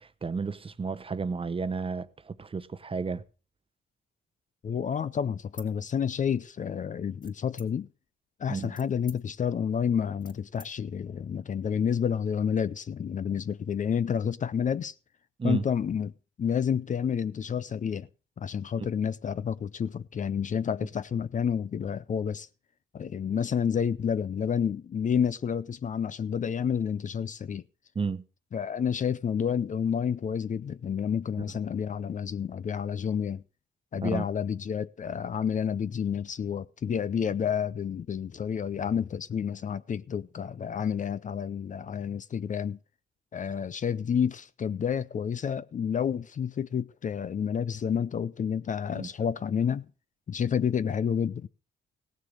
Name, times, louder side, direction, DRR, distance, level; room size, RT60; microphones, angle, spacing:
voice 1, 0.0-3.2 8.5-8.7 15.4-15.6 18.8-18.9 27.9-28.2 34.0-34.3 48.9-49.1, right 4 dB, 25° right, 0.9 m, -32 dB
voice 2, 4.6-7.9 8.4-14.9 15.4-16.1 16.4-18.1 18.4-22.5 22.9-27.6 28.5-33.4 33.9-42.8 43.3-49.9 50.3-51.5, left 7 dB, 40° left, 0.5 m, -29 dB
sound 1, 5.5-6.5 7.2-8.0 8.5-10.7, left 2 dB, 20° left, 2.3 m, -52 dB
16.5 x 6.8 x 6.4 m
cardioid pair, 90°, 20 cm